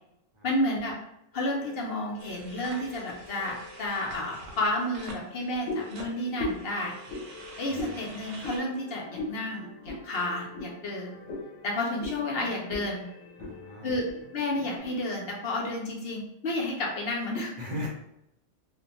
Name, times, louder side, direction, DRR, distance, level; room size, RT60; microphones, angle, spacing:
voice 1, 0.4-1.0 1.3-6.9 7.6-11.1 11.6-13.1 13.8-17.5, left 1 dB, 60° left, -2 dB, 0.8 m, -31 dB
sound 1, 1.3-14.8, left 4 dB, 25° left, 0.5 m, -49 dB
sound 2, 2.2-8.6, right 2 dB, 80° right, 1.0 m, -47 dB
sound 3, 5.6-5.9 6.4-6.7 7.1-7.3 7.7-8.0 8.4-8.6 9.1-9.4 9.8-10.0 10.5-10.7 11.3-11.5 12.0-12.2 12.7-12.9 13.2-13.5 14.1-14.2 14.8-14.9, left 2 dB, 75° left, 1.1 m, -35 dB
voice 2, 7.7-8.0 13.4-14.0 17.6-17.9, left 1 dB, 45° right, -2 dB, 0.6 m, -38 dB
2.5 x 2.1 x 2.9 m, 0.81 s
omnidirectional pair, 1.3 m